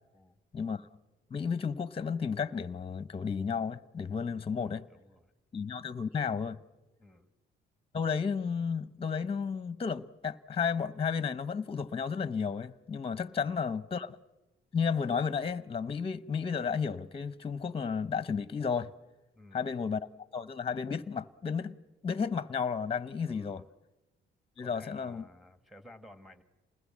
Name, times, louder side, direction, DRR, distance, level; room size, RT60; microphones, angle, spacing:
voice 1, 0.5-0.9 1.3-4.9 5.5-6.6 7.9-14.2 14.7-18.9 19.5-20.0 20.3-21.8 22.0-23.6 24.6-25.2, left 6 dB, 30° left, 0.9 m, -33 dB
voice 2, 4.4-5.3 7.0-7.3 13.4-13.6 19.4-19.7 23.3-23.7 24.6-26.4, left 1 dB, ahead, 1.8 m, -55 dB
28.5 x 20.5 x 7.4 m
cardioid pair, 90°, 20 cm